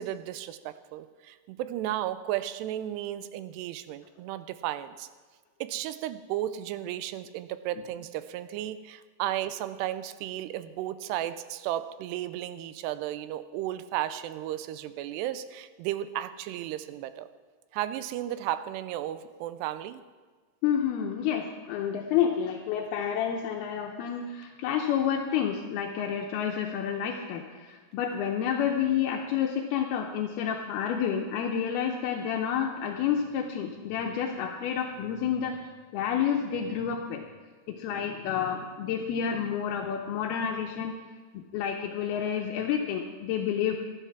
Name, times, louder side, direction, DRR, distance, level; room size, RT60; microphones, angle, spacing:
voice 1, 0.0-5.1 5.6-17.3 17.7-20.0, right 12 dB, 85° right, 13 dB, 2.7 m, -34 dB
voice 2, 20.6-35.6 35.9-37.3 37.7-41.0 41.3-43.8, left 8 dB, 80° left, 2 dB, 2.6 m, -29 dB
13.0 x 11.5 x 6.0 m, 1.5 s
omnidirectional pair, 4.8 m